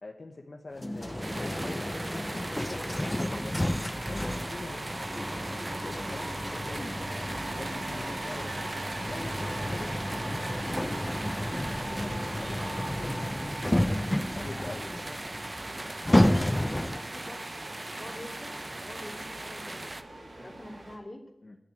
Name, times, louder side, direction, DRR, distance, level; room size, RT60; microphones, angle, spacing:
voice 1, 0.0-3.5 3.9-5.5 5.8-8.7 9.0-9.9 10.3-11.1 11.5-13.4 13.9-15.1 21.4-21.6, left 2 dB, 65° left, 1 dB, 1.3 m, -44 dB
sound 1, 0.8-17.2, left 1 dB, 20° left, 0.6 m, -31 dB
sound 2, 1.0-21.0, right 2 dB, 70° right, 3.4 m, -41 dB
sound 3, 1.2-20.0, right 1 dB, 35° right, 0.8 m, -40 dB
voice 2, 16.1-17.5 17.9-21.3, left 1 dB, 35° left, 2 dB, 2.9 m, -46 dB
12.0 x 6.9 x 9.0 m, 0.90 s
wide cardioid pair, 45°, 0 cm